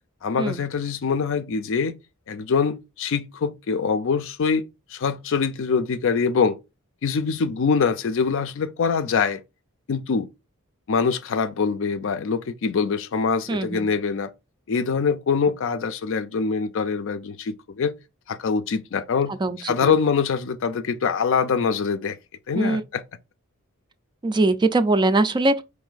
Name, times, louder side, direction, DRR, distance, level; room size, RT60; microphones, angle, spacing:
voice 1, 0.2-2.0 2.3-4.7 4.9-6.6 7.0-9.4 9.9-10.3 10.9-14.3 14.7-17.9 18.3-22.2 22.5-23.0, left 5 dB, 65° left, 0.4 m, -24 dB
voice 2, 13.5-13.9 19.4-19.9 22.5-22.8 24.2-25.5, right 2 dB, 20° right, 0.3 m, -21 dB
4.6 x 2.6 x 3.9 m
head